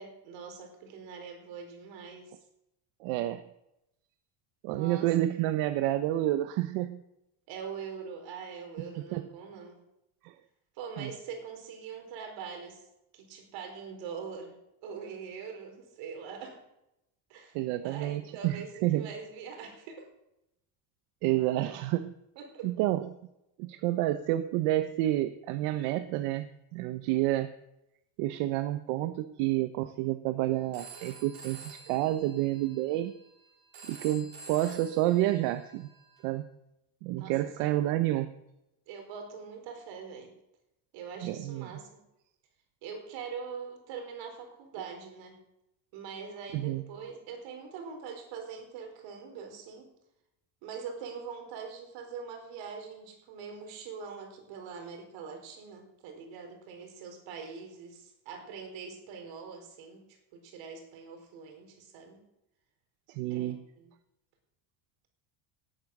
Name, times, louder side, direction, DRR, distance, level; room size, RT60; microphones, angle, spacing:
voice 1, 0.0-2.4 4.7-5.1 7.5-9.8 10.7-12.9 13.1-14.5 14.8-16.6 17.3-17.6 17.8-20.1 22.4-22.7 37.2-37.8 38.9-40.3 40.9-41.9 42.8-45.4 45.9-49.9 50.6-60.0 60.3-62.2 63.3-63.9, right 6 dB, 65° right, 4 dB, 4.6 m, -43 dB
voice 2, 3.0-3.4 4.6-7.0 9.1-9.3 10.2-10.4 11.0-11.1 17.5-19.1 21.2-22.1 22.6-23.1 23.6-27.5 28.2-33.1 33.9-35.9 36.2-36.5 37.0-38.3 41.2-41.7 46.5-46.8 63.1-63.6, right 15 dB, 85° right, 10 dB, 1.0 m, -29 dB
Telephone, 30.7-36.3, right 3 dB, 45° right, 3.4 m, -50 dB
18.0 x 9.8 x 6.6 m, 0.87 s
cardioid pair, 180°, 49 cm